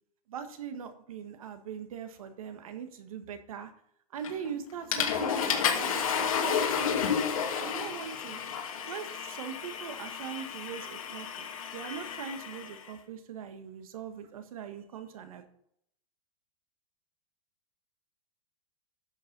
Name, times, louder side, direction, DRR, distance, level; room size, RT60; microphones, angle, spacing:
voice 1, 0.3-3.7 4.1-8.4 8.9-11.5 11.7-15.4, right 7 dB, 65° right, 8 dB, 1.6 m, -41 dB
Water / Toilet flush, 4.2-4.5 4.9-12.8, left 7 dB, 65° left, 2.6 m, -31 dB
11.0 x 6.5 x 5.4 m, 0.71 s
supercardioid pair, 180°, 19 cm